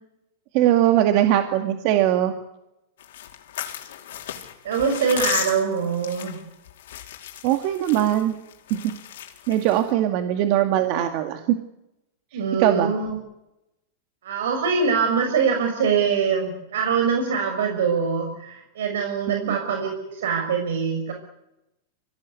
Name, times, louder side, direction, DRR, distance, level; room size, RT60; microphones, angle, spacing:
voice 1, 0.5-2.3 7.4-8.4 8.7-8.8 9.5-11.6 12.3-12.9 19.3-19.6, right 12 dB, 45° right, 6 dB, 2.1 m, -21 dB
sound 1, 3.0-9.9, left 11 dB, 75° left, 4.6 m, -35 dB
voice 2, 4.6-6.4 12.3-13.2 14.2-21.1, right 6 dB, 85° right, 4 dB, 6.1 m, -23 dB
25.0 x 18.0 x 9.6 m, 0.89 s
supercardioid pair, 150°, 0 cm